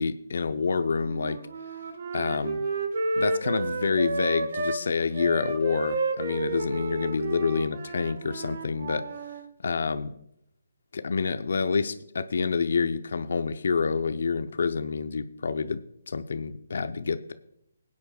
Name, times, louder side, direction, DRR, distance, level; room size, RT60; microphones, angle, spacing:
voice 1, 0.0-1.4 2.1-2.6 3.2-9.0 9.6-10.1 10.9-15.8 16.1-17.3, left 5 dB, 65° left, 10 dB, 0.6 m, -27 dB
Wind instrument woodwind instrument, 1.0-4.8 5.1-9.4, right 3 dB, 50° right, 1.3 m, -32 dB
19.5 x 9.5 x 2.3 m, 0.73 s
hypercardioid pair, 155°, 0 cm